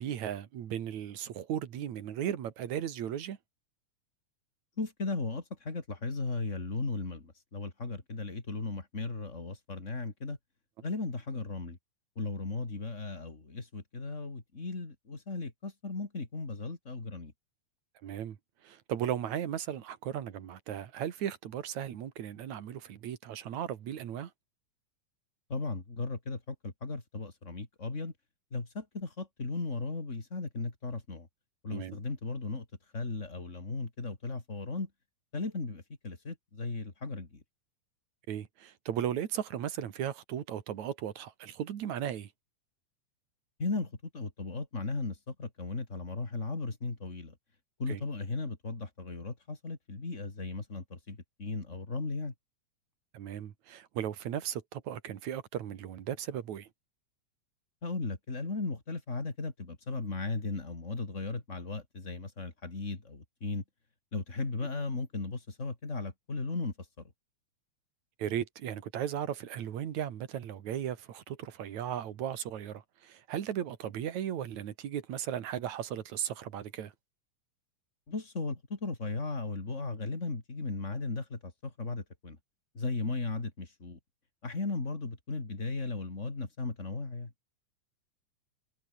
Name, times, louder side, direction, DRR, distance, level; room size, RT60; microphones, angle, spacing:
voice 1, 0.0-3.4 18.0-18.4 18.6-24.3 31.7-32.0 38.3-42.3 47.9-48.0 53.1-56.7 64.6-64.7 68.2-76.9, right 10 dB, 70° right, 3.1 m, -36 dB
voice 2, 4.8-10.4 10.8-11.8 12.2-17.3 25.5-28.1 28.5-31.3 31.6-32.6 32.9-34.9 35.3-37.4 43.6-47.3 47.8-52.3 57.8-63.6 64.1-66.7 78.1-82.4 82.7-84.0 84.4-87.3, left 3 dB, 25° left, 3.3 m, -36 dB
omnidirectional pair, 3.6 m